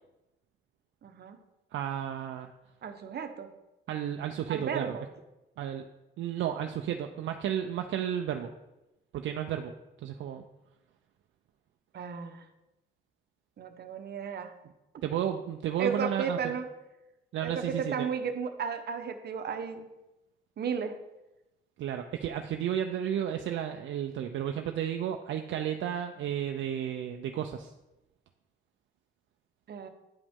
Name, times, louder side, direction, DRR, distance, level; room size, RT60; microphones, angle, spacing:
voice 1, 1.0-1.4 2.8-3.5 4.5-5.0 11.9-12.5 13.6-14.5 14.9-15.0 15.8-16.7 17.4-19.9 20.6-21.0 29.7-29.9, right 6 dB, 55° right, 7 dB, 0.9 m, -34 dB
voice 2, 1.7-2.5 3.9-5.0 5.6-5.8 6.2-8.5 9.1-9.7 10.0-10.4 15.0-16.5 17.3-18.1 21.8-27.7, right 10 dB, 70° right, 5 dB, 0.5 m, -32 dB
9.4 x 5.0 x 3.6 m, 0.97 s
cardioid pair, 90°, 20 cm